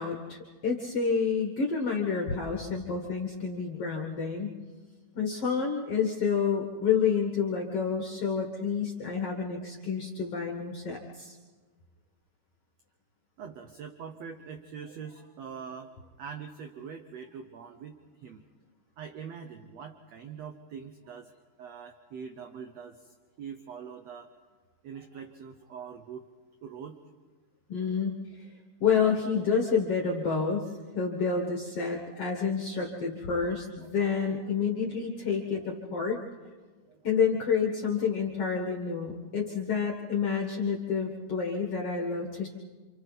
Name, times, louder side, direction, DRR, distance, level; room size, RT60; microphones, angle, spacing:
voice 1, 0.0-4.6 5.2-11.4 27.7-28.5 28.8-36.2 37.0-42.5, left 6 dB, 50° left, 0 dB, 2.3 m, -29 dB
voice 2, 13.4-18.4 19.0-21.3 21.6-24.3 24.8-26.3 26.6-27.0 29.9-30.0 34.2-34.4 35.5-35.7 36.9-37.1, right 6 dB, 65° right, 6 dB, 1.8 m, -43 dB
29.0 x 27.5 x 4.1 m, 1.4 s
omnidirectional pair, 4.1 m